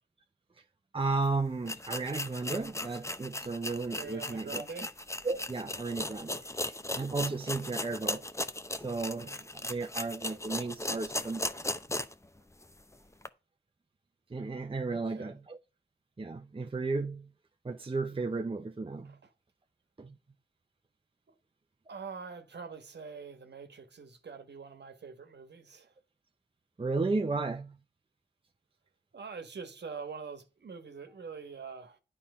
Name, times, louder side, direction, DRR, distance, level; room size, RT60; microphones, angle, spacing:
voice 1, 0.9-4.6 5.2-8.2 8.8-11.6 14.3-15.6 16.2-17.3 17.6-19.2 20.0-20.2 26.8-27.8, right 3 dB, 30° right, 0.7 m, -34 dB
sound 1, 1.1-1.2 1.6-12.3 12.6-12.7 13.2-13.3, left 1 dB, 15° left, 0.7 m, -37 dB
voice 2, 4.0-4.9 6.5-6.6 14.9-15.4 19.0-19.2 21.3-21.4 21.9-25.9 29.1-32.0, right 5 dB, 75° right, 1.3 m, -44 dB
9.3 x 4.4 x 5.5 m
cardioid pair, 45°, 18 cm